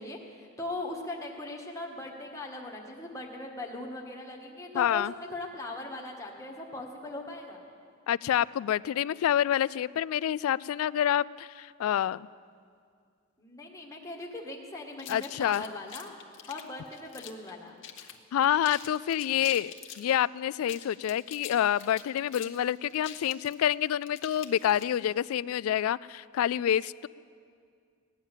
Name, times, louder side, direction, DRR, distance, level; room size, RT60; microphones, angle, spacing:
voice 1, 0.0-7.6 13.4-16.2 16.5-17.7, left 2 dB, 15° left, -1 dB, 1.6 m, -39 dB
voice 2, 4.7-5.1 8.1-12.3 15.1-15.6 18.3-27.1, left 10 dB, 90° left, 18 dB, 0.3 m, -27 dB
sound 1, 15.0-17.5 17.8-18.2 18.4-20.1 20.6-25.1, left 10 dB, 60° left, 1.0 m, -45 dB
17.5 x 10.0 x 7.3 m, 2.2 s
head